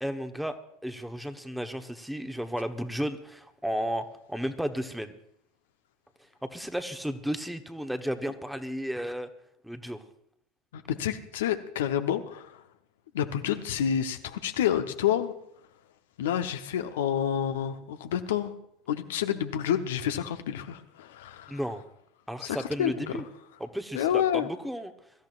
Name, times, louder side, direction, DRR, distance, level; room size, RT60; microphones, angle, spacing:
voice 1, 0.0-5.1 6.4-9.3 9.6-10.0 21.5-21.8 22.3-23.2 23.6-24.9, equal, 5° right, 8 dB, 1.0 m, -33 dB
voice 2, 10.7-12.6 13.1-15.3 16.2-18.5 18.9-21.6 22.4-22.9 23.9-24.5, left 9 dB, 70° left, 7 dB, 0.9 m, -29 dB
23.0 x 13.0 x 2.5 m, 0.73 s
figure-of-eight pair, 80°, 0 cm